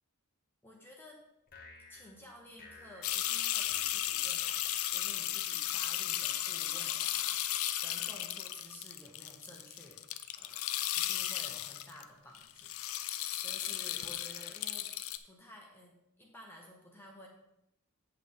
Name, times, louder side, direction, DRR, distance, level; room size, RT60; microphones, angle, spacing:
voice 1, 0.6-1.2 1.9-10.0 10.4-10.7 11.0-14.9 15.2-17.3, left 1 dB, 10° left, -1 dB, 1.0 m, -53 dB
sound 1, 1.5-4.9, left 3 dB, 40° left, 1.3 m, -56 dB
sound 2, 3.0-12.0 12.3-15.2, left 12 dB, 75° left, 0.5 m, -35 dB
8.3 x 8.0 x 3.6 m, 0.87 s
head